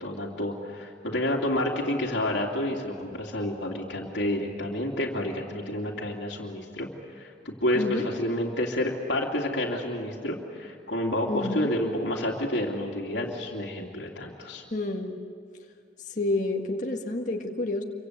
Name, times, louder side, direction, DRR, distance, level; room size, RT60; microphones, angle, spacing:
voice 1, 0.0-6.9 7.2-14.6, left 1 dB, 80° left, -1 dB, 2.8 m, -29 dB
voice 2, 7.7-8.1 11.3-11.7 14.7-15.2 16.1-17.8, left 2 dB, 45° left, 1 dB, 1.8 m, -29 dB
27.5 x 24.5 x 8.2 m, 2.1 s
head